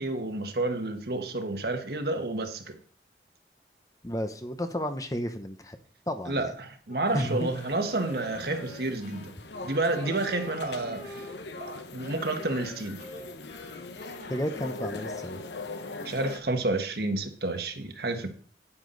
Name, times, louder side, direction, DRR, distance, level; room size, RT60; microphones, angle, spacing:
voice 1, 0.0-2.8 6.3-9.3 9.6-11.2 11.9-13.1 16.0-18.3, right 2 dB, 60° right, 1.5 m, -30 dB
voice 2, 4.0-5.8 6.1-6.5 7.1-7.5 14.3-15.4, equal, 20° left, 0.8 m, -32 dB
Wind instrument woodwind instrument, 6.9-15.3, right 1 dB, 50° left, 3.8 m, -46 dB
sound 1, 7.0-16.4, left 3 dB, 80° left, 1.0 m, -41 dB
9.9 x 9.6 x 4.0 m
head